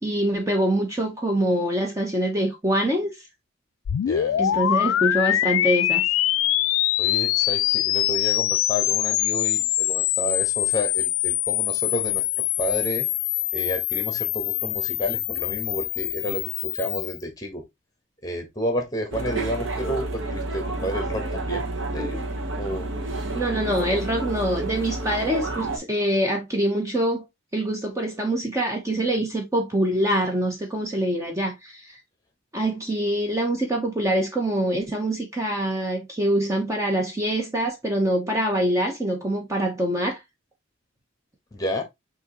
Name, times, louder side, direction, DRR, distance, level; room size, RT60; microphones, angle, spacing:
voice 1, 0.0-3.1 4.4-6.0 23.3-27.2 27.5-31.9 32.5-40.2, right 1 dB, 15° right, 0.8 m, -24 dB
sound 1, 3.8-17.2, left 14 dB, 85° left, 0.3 m, -24 dB
voice 2, 4.0-4.6 7.0-12.2 12.6-13.1 13.5-17.6 18.2-21.7 21.9-22.2 22.5-22.9 23.8-24.0 41.5-41.8, equal, 20° left, 1.2 m, -31 dB
sound 2, 19.1-25.8, right 2 dB, 70° right, 1.1 m, -30 dB
6.1 x 2.8 x 2.9 m
head